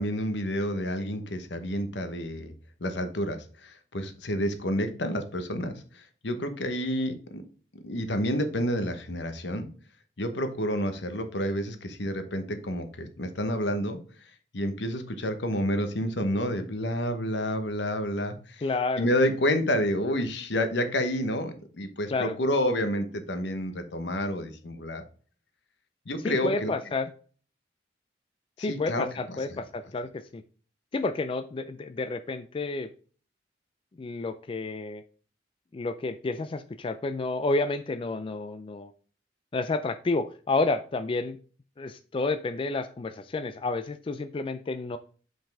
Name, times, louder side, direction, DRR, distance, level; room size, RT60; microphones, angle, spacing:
voice 1, 0.0-2.5 2.8-7.4 7.8-9.7 10.2-14.0 14.5-18.6 19.0-25.0 26.1-26.7 28.6-29.4, equal, 75° left, 8 dB, 1.1 m, -29 dB
voice 2, 18.6-19.1 22.1-22.3 26.2-27.1 28.6-30.4 30.9-32.9 34.0-35.0 35.7-38.9 39.5-41.4 41.8-45.0, left 3 dB, 30° left, 10 dB, 0.4 m, -30 dB
5.7 x 5.3 x 3.4 m, 0.41 s
head